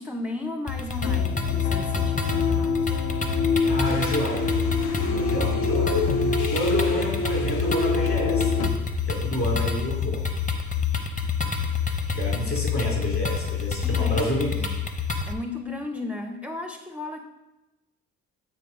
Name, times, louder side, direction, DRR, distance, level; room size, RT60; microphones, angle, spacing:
voice 1, 0.0-3.1 13.8-14.3 14.6-14.8 15.3-17.2, left 2 dB, 5° right, 5 dB, 0.4 m, -35 dB
sound 1, 0.7-15.3, left 6 dB, 25° left, 0.8 m, -27 dB
sound 2, 1.0-8.7, left 3 dB, 85° left, 0.7 m, -26 dB
voice 2, 3.6-6.2 6.5-8.6 9.0-10.3 12.1-14.5, equal, 45° left, -1 dB, 2.6 m, -30 dB
8.6 x 3.3 x 5.1 m, 1.0 s
cardioid pair, 90°, 30 cm